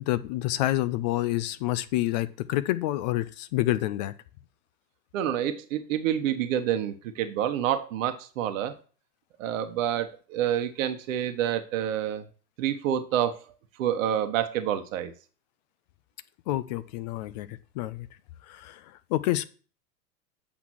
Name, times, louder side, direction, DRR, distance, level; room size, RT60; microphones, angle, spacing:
voice 1, 0.0-4.1 16.5-18.1 18.5-19.4, left 15 dB, 30° left, 14 dB, 0.4 m, -28 dB
voice 2, 5.1-8.7 9.4-12.3 12.6-13.4 13.8-15.1, right 10 dB, 50° right, 9 dB, 1.2 m, -28 dB
8.1 x 6.1 x 6.2 m, 0.39 s
hypercardioid pair, 105°, 49 cm